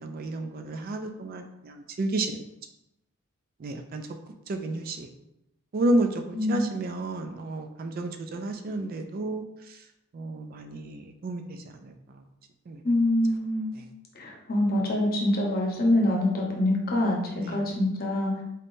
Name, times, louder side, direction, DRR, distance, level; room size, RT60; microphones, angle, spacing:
voice 1, 0.0-2.4 3.6-4.1 4.5-5.1 5.7-9.4 10.1-12.2 12.7-12.8 17.4-17.6, right 2 dB, 40° right, 6 dB, 0.3 m, -31 dB
voice 2, 6.3-6.7 12.8-13.7 14.1-18.3, left 1 dB, 45° left, -1 dB, 0.9 m, -25 dB
4.2 x 3.5 x 2.6 m, 0.85 s
head